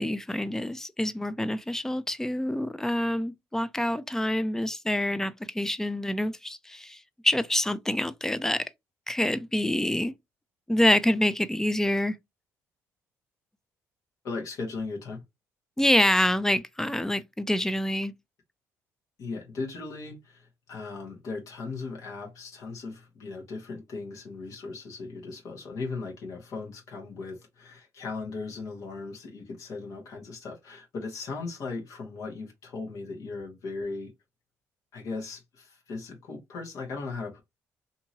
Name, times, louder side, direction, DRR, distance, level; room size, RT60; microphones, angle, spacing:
voice 1, 0.0-8.7 9.1-10.1 10.7-12.2 15.8-18.1, left 1 dB, 10° left, 0.4 m, -26 dB
voice 2, 14.2-15.2 19.2-34.1 34.9-37.4, left 3 dB, 65° left, 1.2 m, -37 dB
2.8 x 2.7 x 2.7 m
cardioid pair, 85°, 6 cm